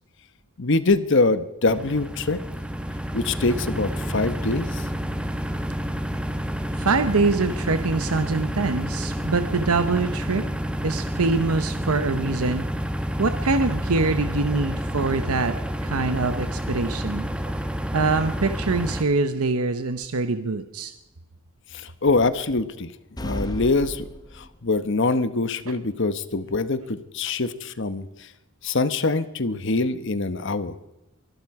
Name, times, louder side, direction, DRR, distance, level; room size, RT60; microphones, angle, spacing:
voice 1, 0.6-2.4 3.1-4.9 21.7-22.9 23.2-24.1 24.4-28.1 28.6-30.7, left 3 dB, 55° left, 13 dB, 1.0 m, -24 dB
sound 1, 1.7-19.0, equal, 5° right, 1.0 m, -29 dB
voice 2, 6.8-10.5 10.8-12.6 13.2-15.5 15.8-17.3 17.9-20.9, right 3 dB, 85° right, 9 dB, 0.9 m, -24 dB
sound 2, 23.2-24.8, left 1 dB, 20° left, 0.9 m, -34 dB
24.0 x 12.0 x 4.8 m, 0.97 s
head